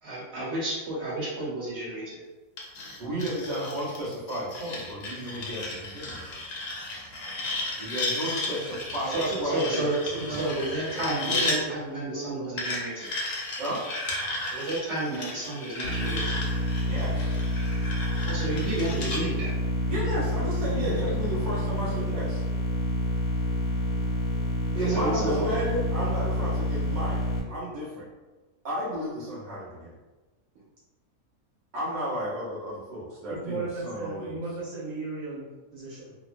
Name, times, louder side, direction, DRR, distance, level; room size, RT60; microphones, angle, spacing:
voice 1, 0.0-2.2 9.1-13.1 14.5-16.4 18.2-19.5 24.8-25.6, right 1 dB, 55° right, -9 dB, 1.4 m, -31 dB
sound 1, 2.6-11.6 12.6-19.2, left 2 dB, 60° left, 0.8 m, -34 dB
voice 2, 3.0-6.2 7.8-9.8 10.3-10.5 13.6-13.8 16.8-17.4 19.9-22.4 24.7-28.1 28.6-29.9 31.7-34.4, equal, 35° right, -9 dB, 1.0 m, -33 dB
voice 3, 10.1-10.5 10.9-12.6 20.7-21.1 33.3-36.1, right 3 dB, 75° right, -8 dB, 1.1 m, -35 dB
sound 2, 15.8-27.4, equal, 80° left, 1.1 m, -28 dB
3.0 x 2.1 x 2.5 m, 1.2 s
omnidirectional pair, 1.5 m